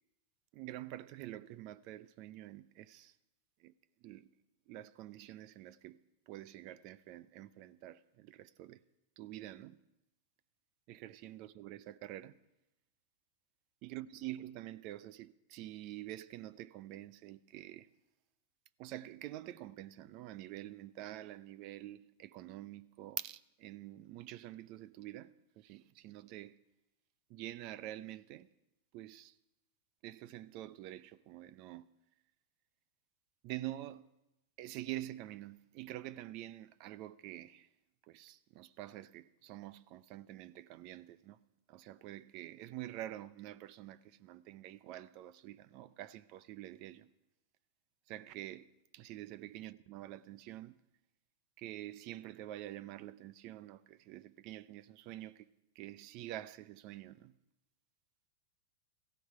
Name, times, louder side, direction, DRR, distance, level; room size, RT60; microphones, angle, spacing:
voice 1, 0.5-3.1 3.6-3.7 4.0-4.3 4.7-8.8 9.2-9.8 10.9-12.4 13.8-17.9 18.8-26.6 27.3-28.5 28.9-29.4 30.0-31.9 33.4-34.1 34.6-37.7 38.0-41.4 41.7-47.1 48.1-50.8 51.6-57.4, right 14 dB, 50° right, 0.6 m, -47 dB
17.0 x 15.0 x 4.8 m
hypercardioid pair, 120°, 0 cm